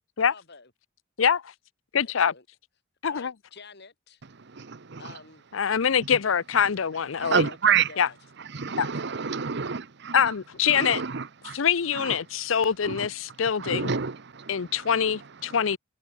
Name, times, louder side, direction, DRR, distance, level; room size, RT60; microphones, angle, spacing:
voice 1, 0.2-0.7 2.2-2.5 3.1-4.2 5.0-5.4 7.4-8.2, left 4 dB, 60° left, 4.4 m, -48 dB
voice 2, 1.2-1.5 1.9-2.3 3.0-3.3 5.5-7.5 8.0-8.1 8.8-8.9 10.1-11.0 11.5-13.9 14.5-15.8, left 7 dB, 80° left, 0.6 m, -24 dB
voice 3, 4.4-5.1 7.2-7.9 8.4-10.3 10.7-11.6 11.9-12.2 12.8-13.1 13.6-15.6, right 6 dB, 60° right, 1.0 m, -29 dB
head